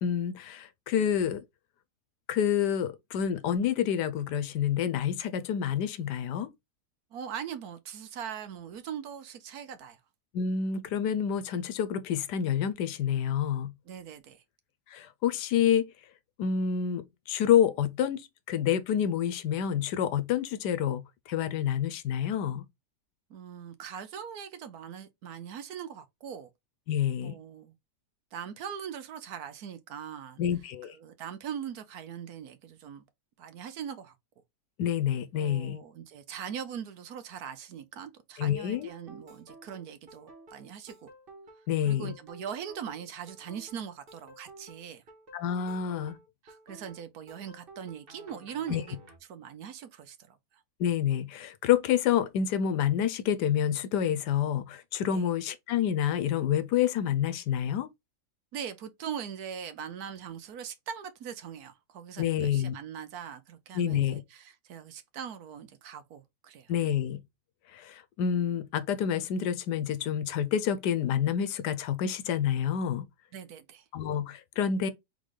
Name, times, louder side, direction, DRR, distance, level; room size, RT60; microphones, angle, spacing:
voice 1, 0.0-1.4 2.3-6.5 10.3-13.7 14.9-15.9 16.4-21.0 21.3-22.7 26.9-27.4 30.4-30.9 34.8-35.8 38.4-38.9 41.7-42.1 45.3-46.1 48.7-48.8 50.8-57.9 62.2-62.7 63.7-64.2 66.7-67.2 67.7-73.1 73.9-74.9, left 9 dB, 85° left, 1.3 m, -28 dB
voice 2, 7.1-10.0 13.8-14.4 23.3-26.5 27.2-27.8 28.3-30.4 30.9-33.0 33.4-34.2 35.4-41.1 41.8-45.0 46.4-49.0 49.3-50.6 55.1-55.2 58.5-66.7 73.3-73.8, right 8 dB, 70° right, 1.3 m, -41 dB
sound 1, 38.7-49.2, right 2 dB, 35° right, 1.4 m, -52 dB
3.8 x 3.8 x 3.1 m
omnidirectional pair, 1.7 m